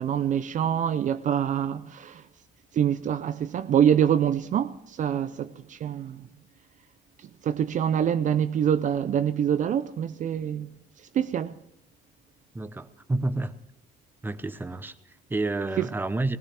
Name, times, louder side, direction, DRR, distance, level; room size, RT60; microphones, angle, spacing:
voice 1, 0.0-2.3 2.7-6.3 7.2-10.7 11.0-11.6 15.8-15.9, right 9 dB, 50° right, 0.5 m, -25 dB
voice 2, 12.5-13.5 14.2-16.4, right 2 dB, 10° right, 0.8 m, -30 dB
19.0 x 18.0 x 3.5 m
cardioid pair, 110°, 17 cm